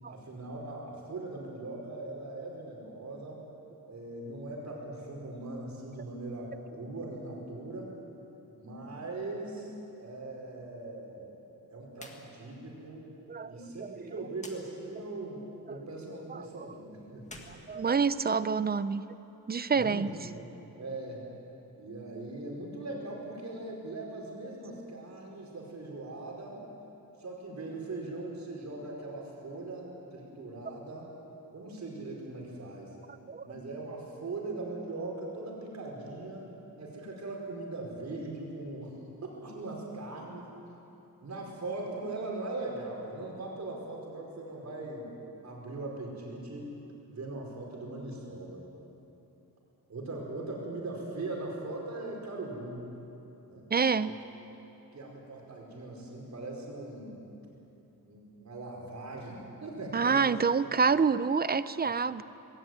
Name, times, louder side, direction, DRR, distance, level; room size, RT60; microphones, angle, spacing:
voice 1, 0.1-3.4 3.9-7.9 8.6-9.7 10.0-11.4 11.7-13.0 13.5-17.7 19.7-21.2 21.8-26.6 27.2-31.1 31.5-32.9 33.4-36.5 36.8-39.0 39.4-40.5 41.2-45.1 45.4-46.7 47.1-48.6 49.9-52.9 53.5-53.6 54.0-54.1 54.9-57.1 58.0-60.4, right 2 dB, 50° right, -2 dB, 4.8 m, -40 dB
sound 1, 11.9-12.2 12.5-12.6 14.4-14.6 17.2-18.5, left 2 dB, 20° left, 1.9 m, -49 dB
voice 2, 13.3-14.1 16.3-16.7 17.5-19.0 19.5-20.1 33.3-33.4 53.7-54.1 59.9-62.2, right 5 dB, 30° right, 15 dB, 0.4 m, -28 dB
19.5 x 16.5 x 9.4 m, 3.0 s
wide cardioid pair, 165°, 36 cm